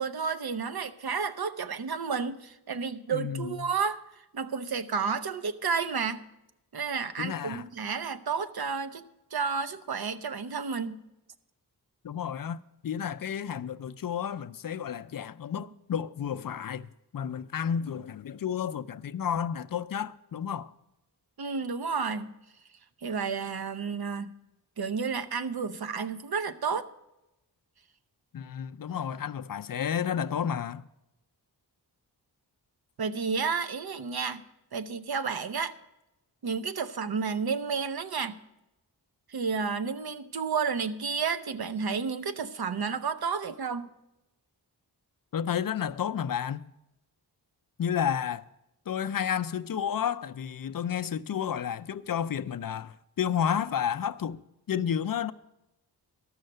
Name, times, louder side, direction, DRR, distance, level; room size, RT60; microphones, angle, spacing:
voice 1, 0.0-4.0 4.3-6.2 6.7-9.0 9.3-11.0 21.4-22.3 23.0-24.3 24.8-26.9 33.0-34.4 34.7-35.8 36.4-38.4 39.3-43.9, right 5 dB, 60° right, 0.8 m, -31 dB
voice 2, 3.1-3.5 7.2-7.6 12.0-12.6 12.8-20.7 28.3-30.8 45.3-46.7 47.8-48.4 48.9-54.4 54.7-55.3, left 8 dB, 55° left, 0.5 m, -31 dB
12.5 x 6.4 x 7.7 m
wide cardioid pair, 90°, 41 cm